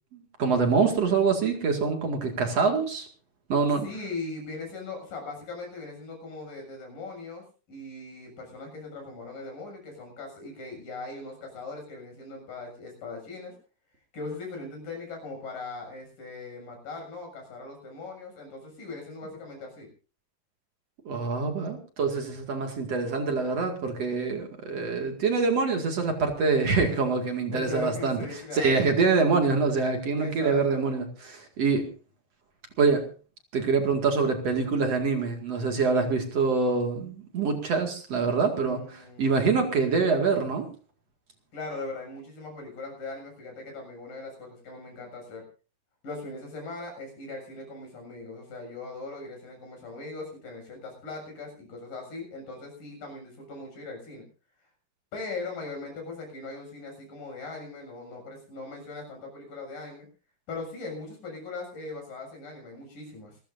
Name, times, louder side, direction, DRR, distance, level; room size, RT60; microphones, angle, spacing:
voice 1, 0.1-3.1 3.5-3.9 21.1-28.2 28.5-31.8 32.8-33.1 33.5-40.7, right 4 dB, 45° right, 4 dB, 2.5 m, -25 dB
voice 2, 3.8-13.5 14.1-19.9 27.5-28.9 30.2-30.9 38.4-39.6 41.5-45.5 46.0-54.2 55.1-60.1 60.5-63.4, left 3 dB, 50° left, 2 dB, 8.8 m, -40 dB
27.5 x 14.0 x 2.7 m, 0.36 s
omnidirectional pair, 5.2 m